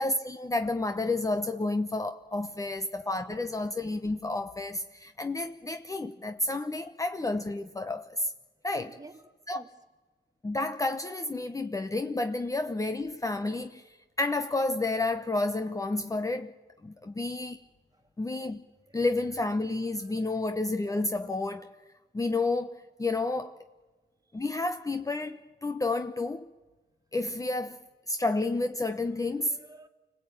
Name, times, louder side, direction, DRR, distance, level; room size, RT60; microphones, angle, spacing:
voice 1, 0.0-8.3 8.6-9.0 9.5-9.6 10.4-13.8 14.2-16.5 16.8-17.6 18.2-18.6 18.9-21.7 22.1-23.6 24.3-26.4 27.1-29.6, left 2 dB, 15° left, 1.0 m, -30 dB
voice 2, 8.8-9.7 17.9-18.0 18.9-19.0 20.0-20.2 24.3-24.4 29.4-29.9, right 3 dB, 20° right, 2.2 m, -52 dB
25.5 x 18.5 x 9.0 m
cardioid pair, 90°, 20 cm